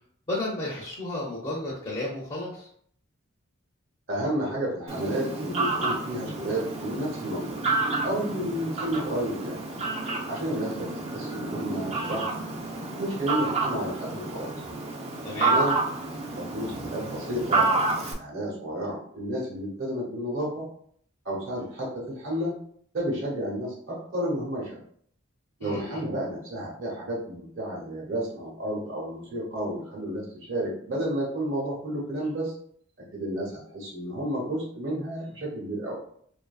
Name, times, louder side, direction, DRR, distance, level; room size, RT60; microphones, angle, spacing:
voice 1, 0.3-2.7 15.2-15.5 25.6-26.0, left 2 dB, 25° left, -5 dB, 0.5 m, -32 dB
voice 2, 4.1-7.6 8.0-9.6 10.2-12.3 12.9-14.6 15.5-15.8 16.3-20.7 21.2-22.5 22.9-24.8 25.6-32.5 33.0-36.0, right 1 dB, 65° right, -5 dB, 0.9 m, -31 dB
Fowl, 4.9-18.1, right 3 dB, 30° right, 0.4 m, -29 dB
2.6 x 2.5 x 2.3 m, 0.63 s
head